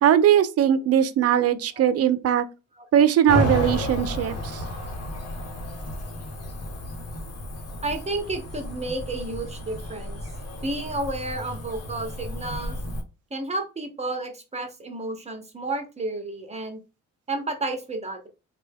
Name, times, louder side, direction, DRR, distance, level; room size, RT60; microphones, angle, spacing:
voice 1, 0.0-2.5 2.9-4.6, right 10 dB, 55° right, 0.5 m, -20 dB
Cricket / Motor vehicle (road), 3.3-13.0, left 1 dB, 55° left, 1.0 m, -32 dB
voice 2, 7.8-10.2 10.6-12.8 13.3-16.8 17.3-18.3, right 2 dB, 20° right, 0.9 m, -31 dB
3.3 x 2.2 x 3.5 m
cardioid pair, 90°, 30 cm